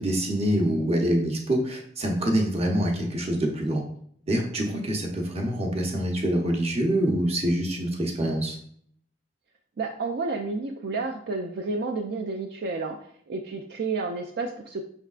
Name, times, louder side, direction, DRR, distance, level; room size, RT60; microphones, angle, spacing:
voice 1, 0.0-3.8 4.3-8.6, right 1 dB, 35° right, 0 dB, 0.9 m, -25 dB
voice 2, 9.8-13.0 13.3-14.8, right 3 dB, 60° right, 2 dB, 0.4 m, -30 dB
5.5 x 3.5 x 2.4 m, 0.63 s
head